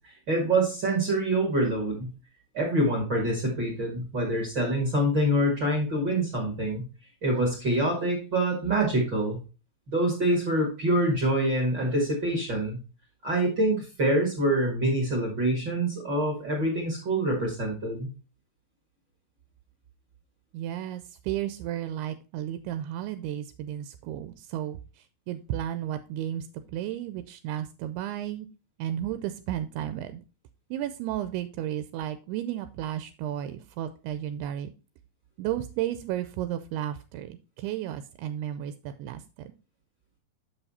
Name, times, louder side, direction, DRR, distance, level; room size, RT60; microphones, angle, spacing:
voice 1, 0.0-2.1 2.5-6.8 7.2-9.4 9.9-12.8 13.2-18.1, right 1 dB, 40° right, -1 dB, 1.7 m, -26 dB
voice 2, 20.5-28.5 28.8-30.2 30.7-34.7 35.4-39.5, right 11 dB, 85° right, 10 dB, 2.5 m, -33 dB
8.4 x 5.7 x 4.1 m, 0.34 s
omnidirectional pair, 4.7 m